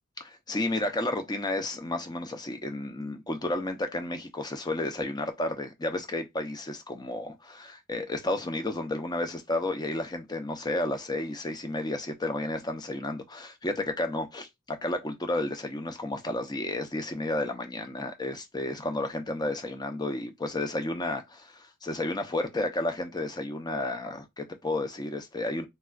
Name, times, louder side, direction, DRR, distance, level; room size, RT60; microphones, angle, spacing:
voice 1, 0.2-25.7, left 2 dB, 20° left, 0.6 m, -32 dB
4.1 x 2.4 x 2.4 m
head